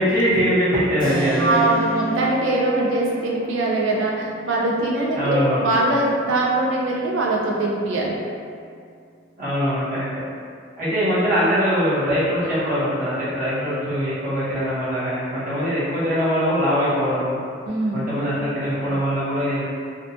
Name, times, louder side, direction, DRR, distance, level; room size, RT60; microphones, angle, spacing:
voice 1, 0.0-1.5 5.1-5.7 9.4-10.2 10.8-17.4 17.9-19.6, equal, 45° right, -11 dB, 0.8 m, -22 dB
Keyboard (musical), 1.0-9.6, right 2 dB, 20° left, 0.7 m, -33 dB
voice 2, 1.4-8.1 17.7-18.1, right 2 dB, 80° right, -2 dB, 0.5 m, -22 dB
2.5 x 2.2 x 2.6 m, 2.3 s
head